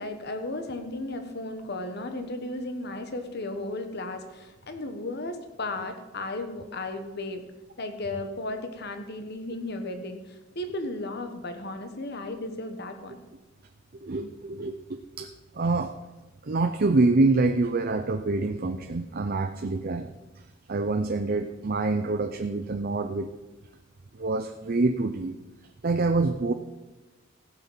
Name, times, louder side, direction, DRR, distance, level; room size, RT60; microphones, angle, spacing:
voice 1, 0.0-7.4 7.8-10.2 10.5-13.2, left 2 dB, 55° left, 6 dB, 1.4 m, -35 dB
voice 2, 14.0-15.3 15.5-15.9 16.4-20.2 20.7-23.3 24.1-25.4 25.8-26.5, right 3 dB, 50° right, 7 dB, 0.6 m, -26 dB
15.5 x 6.2 x 7.3 m, 1.1 s
head